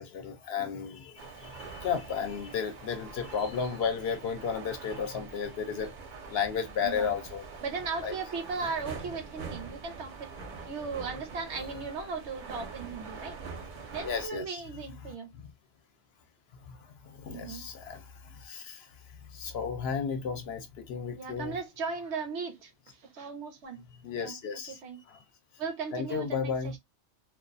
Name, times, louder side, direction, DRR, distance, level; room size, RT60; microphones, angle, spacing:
voice 1, 0.0-5.9 6.3-7.4 8.0-8.1 13.9-15.5 16.6-21.6 23.9-24.8 25.1-25.2 25.9-26.8, left 6 dB, 65° left, 0.8 m, -34 dB
sound 1, 1.2-14.3, right 5 dB, 55° right, 0.6 m, -44 dB
voice 2, 6.8-7.1 7.6-10.3 10.7-13.4 13.9-15.3 17.3-17.6 21.1-22.7 23.0-23.8 24.2-24.4 24.7-25.0 25.6-26.8, right 4 dB, 75° right, 0.9 m, -37 dB
2.3 x 2.3 x 2.5 m
omnidirectional pair, 1.2 m